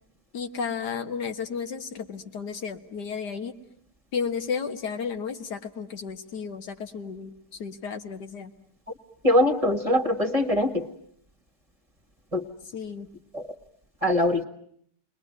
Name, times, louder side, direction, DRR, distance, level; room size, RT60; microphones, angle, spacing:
voice 1, 0.3-3.5 4.1-8.5 12.7-13.1, left 6 dB, 90° left, 6 dB, 2.0 m, -33 dB
voice 2, 9.2-10.9 12.3-12.4 13.3-13.5 14.0-14.4, left 1 dB, 20° right, 6 dB, 1.5 m, -22 dB
29.5 x 21.5 x 9.3 m, 0.69 s
omnidirectional pair, 1.7 m